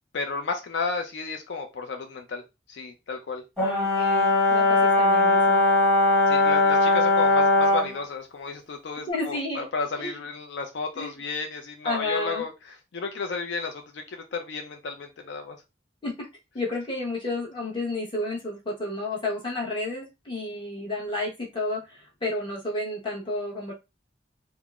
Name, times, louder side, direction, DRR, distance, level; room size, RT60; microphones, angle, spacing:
voice 1, 0.1-2.4 2.7-3.4 6.3-12.5 12.9-15.6, left 4 dB, 75° left, 0.4 m, -32 dB
voice 2, 3.6-5.6 9.0-9.7 10.0-10.2 10.9-11.2 11.8-12.4 16.0-16.3 16.5-23.7, left 2 dB, 25° left, 0.9 m, -31 dB
Brass instrument, 3.6-7.9, left 2 dB, 5° left, 1.2 m, -20 dB
3.6 x 2.0 x 2.3 m
head